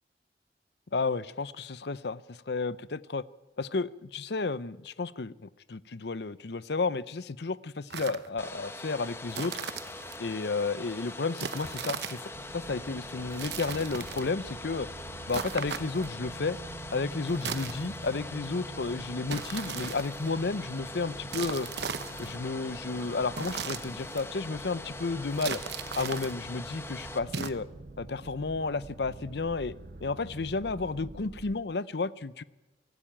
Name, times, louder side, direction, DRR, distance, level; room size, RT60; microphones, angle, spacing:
voice 1, 0.9-3.2 3.6-9.5 10.2-14.9 15.3-16.6 16.9-21.7 22.2-25.6 26.0-27.7 28.0-29.7 30.0-32.4, left 3 dB, 70° left, 17 dB, 0.7 m, -32 dB
sound 1, 7.9-8.3 9.3-10.2 11.4-12.3 13.3-14.3 15.3-16.2 17.3-18.1 19.3-20.3 21.3-22.4 23.3-24.3 25.3-26.4 27.3-27.5, right 6 dB, 70° right, 1.0 m, -37 dB
Domestic sounds home sounds, 8.4-27.2, left 2 dB, 15° left, 1.2 m, -43 dB
sound 2, 12.3-31.6, right 2 dB, 55° right, 0.7 m, -46 dB
24.0 x 15.0 x 8.9 m, 1.1 s
head